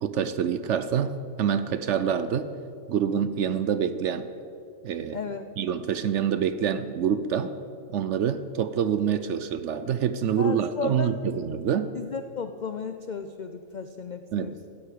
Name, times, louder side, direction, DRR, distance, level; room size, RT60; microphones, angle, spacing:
voice 1, 0.0-1.1 1.4-2.5 2.9-4.3 4.8-5.2 5.6-7.5 7.9-12.0 14.3-14.5, right 8 dB, 60° right, 12 dB, 0.8 m, -26 dB
voice 2, 5.1-5.5 10.4-11.2 11.9-14.5, left 5 dB, 90° left, 8 dB, 0.4 m, -34 dB
15.0 x 8.3 x 8.4 m, 2.4 s
omnidirectional pair, 1.6 m